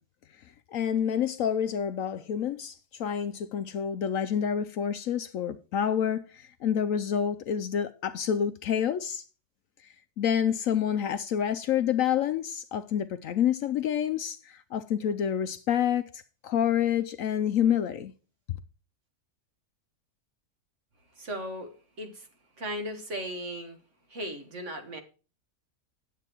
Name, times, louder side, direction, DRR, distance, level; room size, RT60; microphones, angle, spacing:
voice 1, 0.7-9.2 10.2-18.1, left 9 dB, 65° left, 0.9 m, -28 dB
voice 2, 21.1-22.3 22.6-23.8 24.1-25.0, equal, 50° right, 1.7 m, -37 dB
9.5 x 8.1 x 4.4 m
omnidirectional pair, 1.7 m